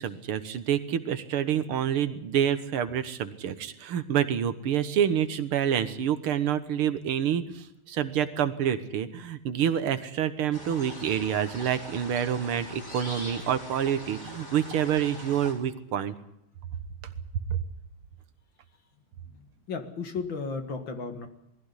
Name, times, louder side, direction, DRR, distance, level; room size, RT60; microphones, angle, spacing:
voice 1, 0.0-16.1 17.5-17.6, right 9 dB, 85° right, 11 dB, 2.1 m, -27 dB
sound 1, 10.5-15.5, left 1 dB, 35° left, 6.2 m, -42 dB
voice 2, 19.3-21.3, left 4 dB, 65° left, 7 dB, 2.7 m, -35 dB
20.5 x 16.0 x 9.8 m, 0.78 s
omnidirectional pair, 2.3 m